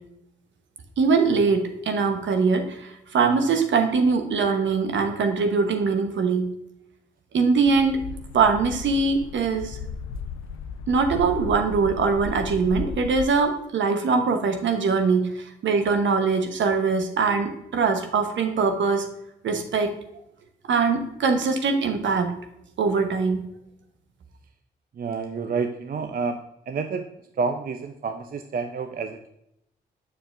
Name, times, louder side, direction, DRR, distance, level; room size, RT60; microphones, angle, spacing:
voice 1, 1.0-6.4 7.3-8.1 8.3-9.8 10.9-19.1 19.4-19.9 20.7-22.3 22.8-23.4, right 4 dB, 65° right, 5 dB, 1.0 m, -22 dB
sound 1, 7.6-13.3, left 6 dB, 80° left, 0.4 m, -35 dB
voice 2, 25.0-26.4 26.7-27.1 27.4-29.3, right 5 dB, 45° right, 7 dB, 0.6 m, -29 dB
7.1 x 6.6 x 2.6 m, 0.80 s
hypercardioid pair, 45°, 21 cm